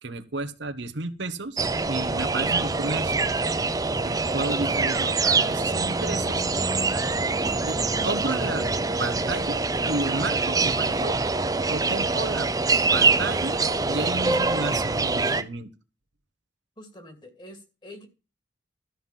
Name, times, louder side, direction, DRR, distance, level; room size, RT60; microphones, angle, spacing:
voice 1, 0.0-1.6 1.9-3.2 4.0-6.5 7.6-7.8 8.0-8.7 9.0-11.2 11.7-12.5 12.9-15.7, right 3 dB, 75° right, 9 dB, 1.2 m, -32 dB
sound 1, 1.6-15.4, right 3 dB, 20° right, 0.7 m, -24 dB
voice 2, 16.8-18.1, left 1 dB, 25° left, 7 dB, 2.5 m, -45 dB
13.0 x 5.7 x 7.4 m, 0.32 s
head